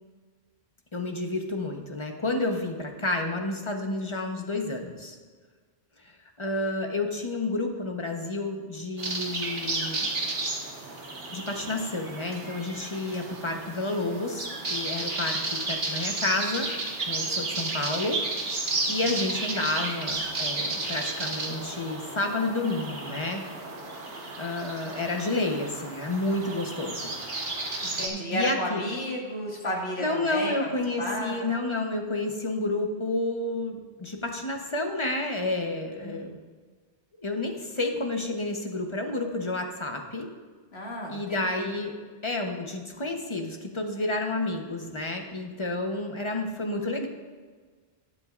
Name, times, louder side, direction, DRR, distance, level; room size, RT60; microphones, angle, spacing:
voice 1, 0.9-5.2 6.4-10.1 11.3-16.7 17.1-18.2 18.9-23.4 24.4-27.1 28.3-28.8 30.0-36.3 37.2-40.3 41.1-41.9 42.2-47.1, left 2 dB, 30° left, 3 dB, 1.0 m, -30 dB
sound 1, 9.0-28.1, right 2 dB, 65° right, 1.7 m, -33 dB
voice 2, 27.8-30.7 31.0-31.5 35.9-36.3 40.7-41.7, equal, 70° left, -2 dB, 2.3 m, -33 dB
19.5 x 7.6 x 2.5 m, 1.5 s
omnidirectional pair, 1.1 m